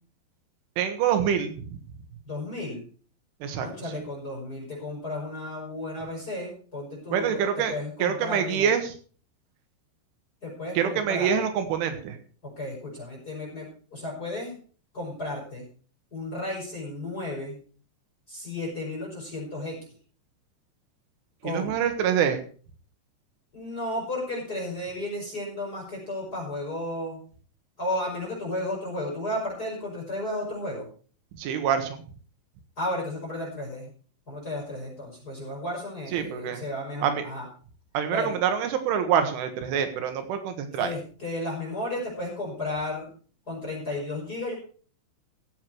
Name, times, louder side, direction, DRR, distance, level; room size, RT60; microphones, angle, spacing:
voice 1, 0.8-1.7 3.4-3.7 3.9-4.0 7.1-7.7 8.0-8.9 10.8-12.2 21.4-22.4 31.3-32.0 36.1-36.6 37.0-37.2 37.9-40.9, right 8 dB, 90° right, 7 dB, 4.1 m, -26 dB
voice 2, 2.2-2.8 3.6-8.7 10.4-11.3 12.4-14.6 14.9-15.7 16.1-17.6 18.3-19.8 21.4-21.8 23.5-27.2 27.8-30.8 32.8-33.9 34.3-37.5 38.1-38.4 40.7-43.1 43.5-44.5, left 1 dB, 20° left, -2 dB, 5.7 m, -33 dB
16.0 x 8.1 x 4.6 m, 0.41 s
omnidirectional pair, 5.5 m